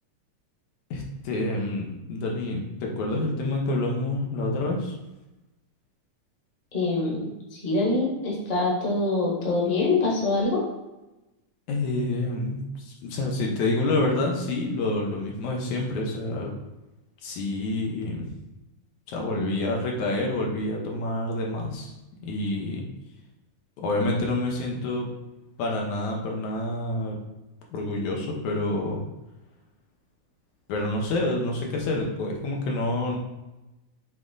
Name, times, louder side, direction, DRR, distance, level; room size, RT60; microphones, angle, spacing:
voice 1, 0.9-5.0 11.7-16.5 17.2-18.3 19.1-21.9 22.2-22.8 23.8-25.1 25.6-27.2 27.7-29.0 30.7-33.2, left 2 dB, 70° left, 0 dB, 2.3 m, -28 dB
voice 2, 6.7-10.6 19.3-19.5, left 2 dB, 25° left, -4 dB, 1.2 m, -25 dB
7.6 x 3.7 x 3.8 m, 0.99 s
omnidirectional pair, 3.6 m